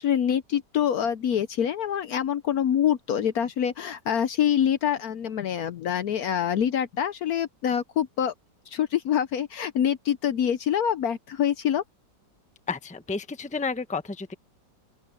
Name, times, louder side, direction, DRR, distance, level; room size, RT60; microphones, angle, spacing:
voice 1, 0.0-8.3 8.7-11.8, left 9 dB, 65° left, 1.1 m, -25 dB
voice 2, 12.7-14.3, left 4 dB, 5° left, 0.8 m, -31 dB
open air
omnidirectional pair, 1.9 m